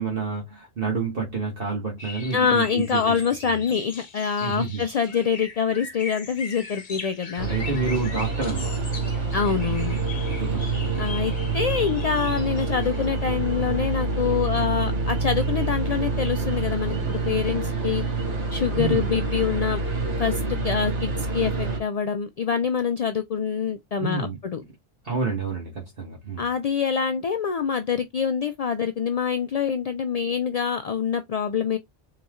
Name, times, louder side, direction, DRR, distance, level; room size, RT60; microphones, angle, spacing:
voice 1, 0.0-3.1 4.4-4.8 7.5-8.8 10.2-11.1 18.8-19.1 24.0-24.4 25.0-26.5, right 4 dB, 50° right, 1.5 m, -29 dB
sound 1, 2.0-13.1, left 4 dB, 45° left, 0.9 m, -40 dB
voice 2, 2.3-7.5 9.3-10.0 11.0-18.0 18.5-19.8 20.2-24.6 26.4-31.8, left 6 dB, 65° left, 0.4 m, -25 dB
sound 2, 7.4-21.8, right 3 dB, 75° right, 1.8 m, -27 dB
4.1 x 2.9 x 3.5 m
omnidirectional pair, 1.2 m